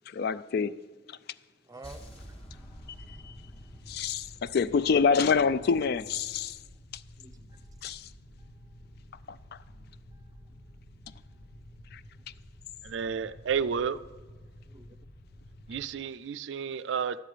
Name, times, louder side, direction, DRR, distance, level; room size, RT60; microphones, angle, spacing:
voice 1, 0.1-0.8 3.1-3.3 3.9-6.6 7.8-8.1 9.3-9.4 11.9-12.0, left 5 dB, 55° left, 0.3 m, -26 dB
voice 2, 1.6-2.8 7.2-7.8 8.4-8.9 9.3-9.6 10.1-10.6 11.1-11.8 12.1-12.3 14.7-14.8 15.7-15.8, right 2 dB, 20° right, 0.6 m, -53 dB
sound 1, 1.8-5.9, equal, 30° left, 1.3 m, -49 dB
sound 2, 2.7-15.9, left 1 dB, 85° left, 1.1 m, -51 dB
voice 3, 12.8-14.0 15.7-17.2, right 6 dB, 70° right, 0.4 m, -31 dB
12.0 x 9.3 x 5.0 m
head